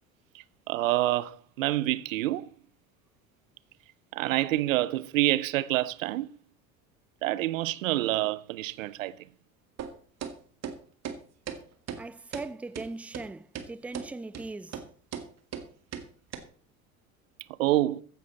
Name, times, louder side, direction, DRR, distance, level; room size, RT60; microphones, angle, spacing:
voice 1, 0.3-2.5 4.1-6.3 7.2-9.3 17.6-18.0, right 16 dB, 65° right, 0.9 m, -27 dB
sound 1, 9.8-9.9 10.2-10.3 10.6-10.8 11.0-11.2 11.5-11.6 11.9-12.0 12.3-12.5 12.7-12.9 13.1-13.2 13.5-13.7 13.9-14.1 14.3-14.4 14.7-14.9 15.1-15.2 15.5-15.6 15.9-16.0 16.3-16.4, right 8 dB, 35° right, 2.2 m, -36 dB
voice 2, 12.0-14.8, right 3 dB, 5° right, 0.5 m, -39 dB
15.0 x 10.5 x 4.1 m
figure-of-eight pair, 70°, 42 cm